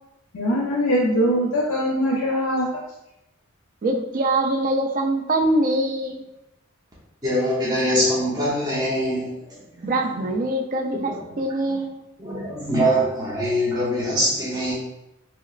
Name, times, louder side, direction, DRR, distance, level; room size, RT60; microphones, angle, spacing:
voice 1, 0.3-2.7, equal, 65° left, -3 dB, 0.5 m, -22 dB
voice 2, 3.8-6.2 9.8-12.0, right 1 dB, 40° right, 3 dB, 0.3 m, -23 dB
voice 3, 7.2-9.9 11.0-11.2 11.7-11.8 12.2-14.7, equal, 15° right, -8 dB, 0.7 m, -23 dB
3.1 x 2.9 x 2.4 m, 0.90 s
head